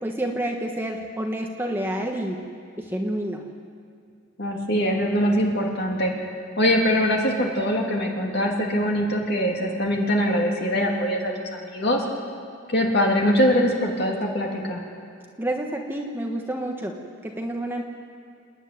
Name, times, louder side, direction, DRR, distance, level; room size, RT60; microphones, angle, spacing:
voice 1, 0.0-2.4 2.8-3.4 15.4-17.0 17.2-17.8, right 1 dB, 10° right, 1 dB, 1.2 m, -28 dB
voice 2, 4.4-6.1 6.6-12.0 12.7-14.8, equal, 50° left, 0 dB, 2.8 m, -23 dB
28.0 x 10.0 x 9.4 m, 2.4 s
head